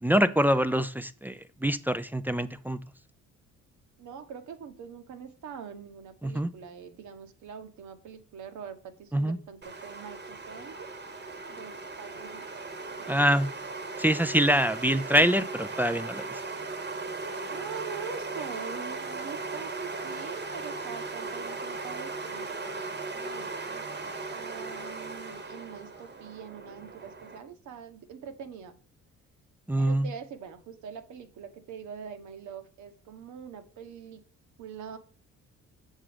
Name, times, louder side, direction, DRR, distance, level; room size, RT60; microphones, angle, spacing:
voice 1, 0.0-2.8 6.2-6.5 9.1-9.4 13.1-13.5 14.0-16.4 29.7-30.1, equal, 5° right, 12 dB, 0.4 m, -25 dB
voice 2, 4.0-10.9 11.5-12.5 12.9-13.1 14.3-14.4 17.5-28.8 29.8-34.2 34.6-35.0, right 7 dB, 75° right, 8 dB, 1.1 m, -44 dB
sound 1, 9.6-27.4, right 3 dB, 35° right, 1.1 m, -38 dB
7.4 x 3.7 x 4.9 m, 0.42 s
cardioid pair, 90°, 30 cm